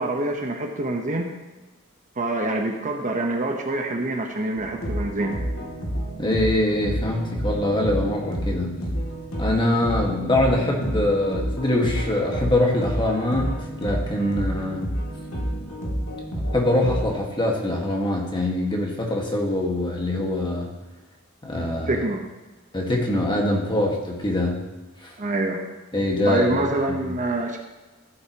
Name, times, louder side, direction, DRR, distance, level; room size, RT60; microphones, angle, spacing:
voice 1, 0.0-1.3 2.2-5.4 21.9-22.3 25.2-25.7 26.3-27.6, right 2 dB, 35° right, 3 dB, 1.0 m, -26 dB
sound 1, 4.6-17.2, equal, 90° left, 2.6 m, -30 dB
voice 2, 6.2-8.8 9.4-14.8 16.5-20.7 21.4-21.9 22.7-24.6 25.0-25.1 25.9-26.5 26.9-27.1, left 1 dB, 20° left, -1 dB, 1.7 m, -23 dB
14.5 x 7.9 x 3.0 m, 1.2 s
head